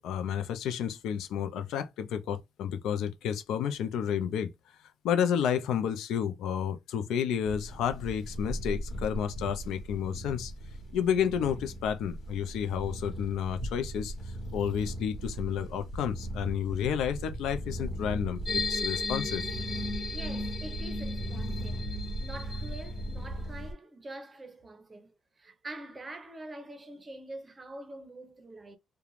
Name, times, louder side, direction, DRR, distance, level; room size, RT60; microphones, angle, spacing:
voice 1, 0.0-4.5 5.0-10.5 10.9-14.1 14.5-19.4, left 8 dB, 85° left, 0.4 m, -31 dB
sound 1, 7.4-23.7, right 1 dB, 70° left, 1.1 m, -38 dB
sound 2, 18.4-23.2, left 3 dB, 30° left, 1.1 m, -35 dB
voice 2, 20.1-28.8, right 1 dB, 25° right, 0.7 m, -45 dB
2.4 x 2.2 x 3.1 m
cardioid pair, 90°, 0 cm